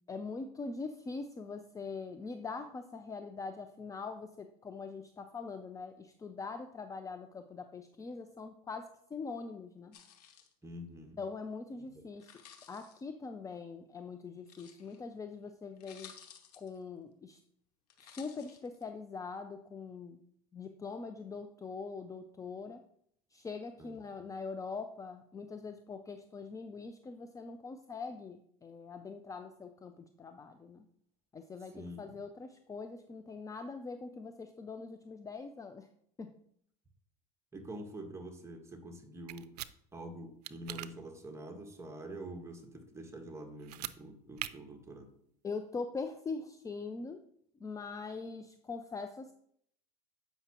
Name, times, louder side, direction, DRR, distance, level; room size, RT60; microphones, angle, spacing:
voice 1, 0.1-10.0 11.2-12.3 12.7-16.1 16.6-17.4 18.0-20.2 20.5-22.8 23.3-30.8 31.3-35.9 36.2-36.3 45.4-47.2 47.6-49.3, left 4 dB, 15° left, 8 dB, 0.4 m, -43 dB
sound 1, 9.9-10.5 12.1-13.0 14.5-15.0 15.5-15.6 15.8-16.8 17.9-18.8, left 8 dB, 85° left, 1.1 m, -55 dB
voice 2, 10.6-11.2 23.8-23.9 31.7-32.2 37.5-39.5 39.9-45.1, right 1 dB, 15° right, 4 dB, 1.4 m, -46 dB
sound 2, 39.3-39.7 40.4-40.9 43.6-44.0 44.4-44.5, right 15 dB, 85° right, 0.4 m, -40 dB
8.0 x 5.6 x 2.9 m, 0.68 s
hypercardioid pair, 95°, 20 cm